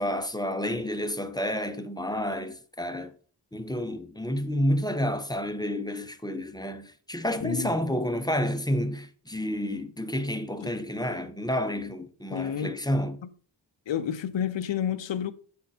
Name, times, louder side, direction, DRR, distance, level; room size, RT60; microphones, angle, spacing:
voice 1, 0.0-3.1 3.5-13.2, equal, 10° left, 0.6 m, -30 dB
voice 2, 7.4-7.7 10.6-10.7 12.3-12.7 13.2-13.3 13.9-15.3, left 9 dB, 80° left, 0.7 m, -30 dB
8.4 x 6.3 x 2.7 m
wide cardioid pair, 125°, 44 cm